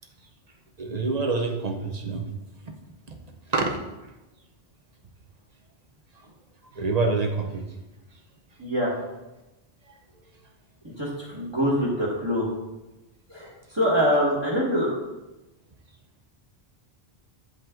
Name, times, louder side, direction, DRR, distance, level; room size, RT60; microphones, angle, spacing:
voice 1, 0.8-2.2 3.5-3.8 6.7-7.6, right 3 dB, 40° right, 4 dB, 0.9 m, -26 dB
voice 2, 8.6-8.9 11.0-12.5 13.3-14.9, equal, 25° right, -6 dB, 1.5 m, -24 dB
8.8 x 5.5 x 3.8 m, 1.0 s
omnidirectional pair, 1.1 m